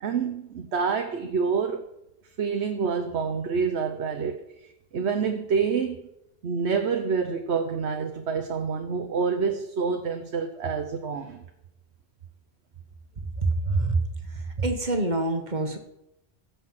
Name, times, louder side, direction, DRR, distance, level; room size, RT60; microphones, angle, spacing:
voice 1, 0.0-1.8 2.4-6.1 6.4-11.4, right 5 dB, 80° right, 5 dB, 1.2 m, -27 dB
voice 2, 13.4-14.0 14.3-15.8, right 2 dB, 45° right, 6 dB, 1.7 m, -26 dB
16.5 x 7.1 x 5.8 m, 0.84 s
omnidirectional pair, 1.1 m